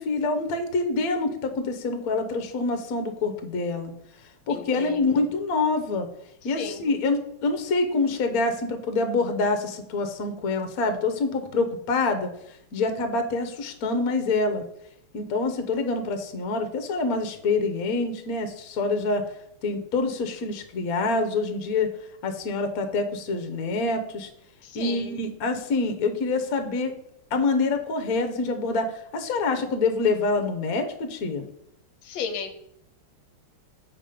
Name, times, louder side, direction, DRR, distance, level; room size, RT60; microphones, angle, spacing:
voice 1, 0.0-3.9 4.5-6.1 6.4-12.3 12.7-14.6 15.1-19.2 19.6-21.9 22.2-24.3 24.7-26.9 27.3-31.4, left 3 dB, 55° left, 7 dB, 1.1 m, -26 dB
voice 2, 4.5-5.3 6.4-6.9 24.6-25.2 32.0-32.5, left 5 dB, 75° left, 7 dB, 1.4 m, -35 dB
7.2 x 4.7 x 5.1 m, 0.75 s
omnidirectional pair, 2.3 m